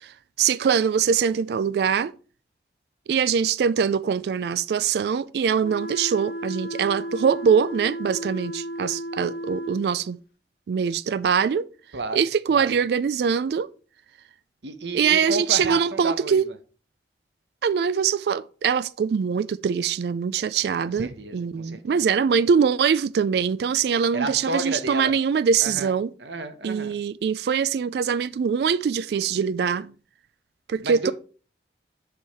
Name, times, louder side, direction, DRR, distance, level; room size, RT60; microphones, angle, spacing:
voice 1, 0.0-2.1 3.1-10.2 10.7-11.7 12.1-13.7 14.9-16.5 17.6-26.1 26.6-29.9 30.7-31.1, right 6 dB, 65° right, 0.3 m, -23 dB
sound 1, 5.6-9.9, equal, 65° left, 1.4 m, -34 dB
voice 2, 11.9-12.2 12.5-12.7 14.6-16.6 20.8-22.0 24.1-25.2 25.6-26.9 30.8-31.1, right 2 dB, 80° right, 1.0 m, -31 dB
6.9 x 4.8 x 4.8 m
head